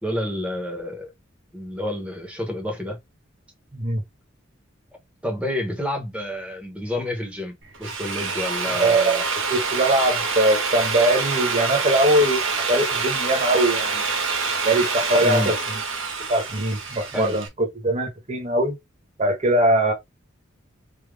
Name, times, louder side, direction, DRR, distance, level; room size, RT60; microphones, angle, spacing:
voice 1, 0.0-1.1 1.5-3.0 5.2-9.2 15.2-15.5 17.1-17.4, left 1 dB, 5° right, 1.1 m, -29 dB
Drill, 7.6-17.5, right 4 dB, 70° right, 1.1 m, -26 dB
voice 2, 8.8-9.2 9.5-14.0 14.6-15.6 16.3-18.8 19.2-19.9, right 1 dB, 35° right, 1.2 m, -21 dB
3.7 x 3.0 x 3.3 m
head